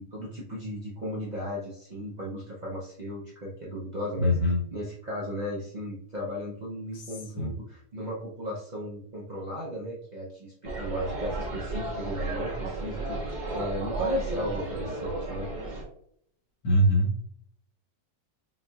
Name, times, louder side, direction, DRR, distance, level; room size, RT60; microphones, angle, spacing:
voice 1, 0.0-4.4 4.7-15.5, equal, 75° right, -5 dB, 0.4 m, -36 dB
voice 2, 4.2-4.6 6.9-7.0 7.4-7.5 16.6-17.3, equal, 70° left, 0 dB, 1.6 m, -23 dB
sound 1, 10.6-15.8, right 2 dB, 30° right, 1.1 m, -33 dB
5.7 x 2.6 x 2.3 m, 0.68 s
omnidirectional pair, 1.9 m